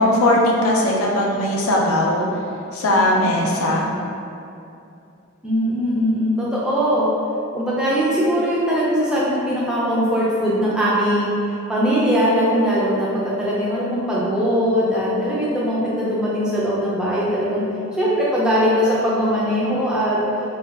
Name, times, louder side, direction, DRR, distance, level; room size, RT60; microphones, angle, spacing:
voice 1, 0.0-2.3 2.7-3.9, left 1 dB, 85° left, -2 dB, 0.4 m, -18 dB
voice 2, 5.4-7.1 7.5-11.3 11.7-13.1 13.4-17.6 18.0-20.2, equal, 5° right, -8 dB, 0.4 m, -20 dB
2.2 x 2.2 x 3.3 m, 2.6 s
head